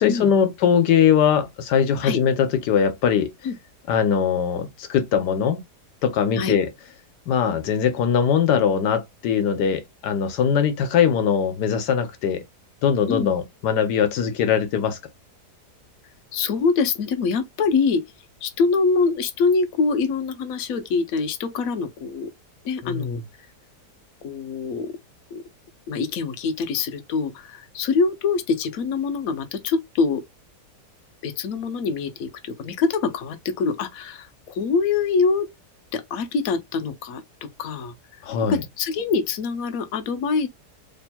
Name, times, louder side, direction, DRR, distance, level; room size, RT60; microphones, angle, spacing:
voice 1, 0.0-3.3 3.9-5.6 6.0-6.7 7.3-12.4 12.8-15.0 22.8-23.2 38.2-38.6, left 7 dB, 80° left, 1.4 m, -21 dB
voice 2, 16.3-18.0 18.4-22.3 22.6-23.2 24.2-24.9 25.3-25.4 25.9-30.2 31.2-35.5 35.9-37.9 38.5-40.5, left 4 dB, 65° left, 1.1 m, -24 dB
4.3 x 3.4 x 2.2 m
omnidirectional pair, 1.8 m